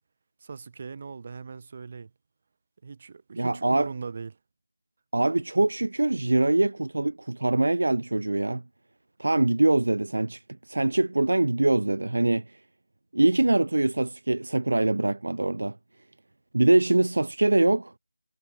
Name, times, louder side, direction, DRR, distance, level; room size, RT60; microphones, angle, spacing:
voice 1, 0.4-2.1 2.8-4.3, right 5 dB, 30° right, 6.8 m, -39 dB
voice 2, 3.4-3.9 5.1-8.6 9.2-12.4 13.1-15.8 16.5-17.9, right 2 dB, 70° right, 1.1 m, -23 dB
figure-of-eight pair, 170°, 0 cm